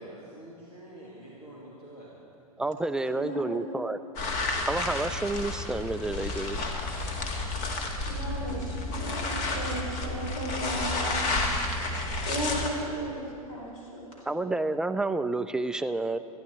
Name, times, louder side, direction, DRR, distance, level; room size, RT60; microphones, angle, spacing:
voice 1, 0.0-2.1, right 1 dB, 80° left, -6 dB, 2.5 m, -47 dB
voice 2, 2.6-4.0 4.7-6.6 14.3-16.2, right 2 dB, 5° right, 10 dB, 0.4 m, -29 dB
voice 3, 3.1-3.6 7.7-11.2 12.3-14.1, right 1 dB, 60° left, -3 dB, 4.6 m, -35 dB
sound 1, 4.2-12.7, left 2 dB, 40° left, 1.8 m, -31 dB
25.0 x 10.5 x 4.5 m, 2.5 s
figure-of-eight pair, 90°, 19 cm